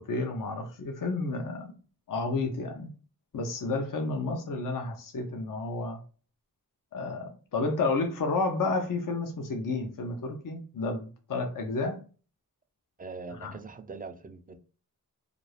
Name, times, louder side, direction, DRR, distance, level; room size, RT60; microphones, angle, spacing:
voice 1, 0.0-1.7 2.1-2.9 3.3-6.0 6.9-12.0 13.4-13.5, left 3 dB, 55° left, 0.6 m, -31 dB
voice 2, 13.0-14.6, right 4 dB, 25° right, 0.4 m, -42 dB
2.5 x 2.3 x 3.2 m
cardioid pair, 50°, 39 cm